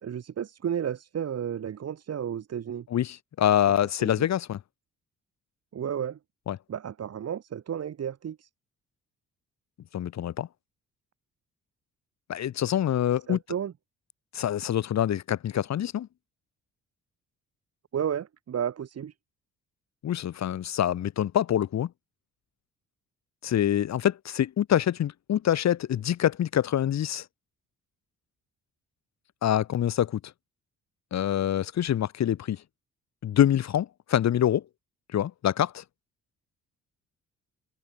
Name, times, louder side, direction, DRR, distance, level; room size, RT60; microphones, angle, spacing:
voice 1, 0.0-2.9 4.0-4.3 5.7-6.2 6.7-8.5 13.3-13.7 17.9-19.1, right 8 dB, 55° right, 3.4 m, -32 dB
voice 2, 2.9-4.6 6.5-6.6 9.9-10.5 12.3-13.4 14.3-16.1 20.0-21.9 23.4-27.2 29.4-30.2 31.1-32.6 33.2-34.6 35.1-35.8, left 11 dB, 60° left, 1.9 m, -25 dB
cardioid pair, 90°, 30 cm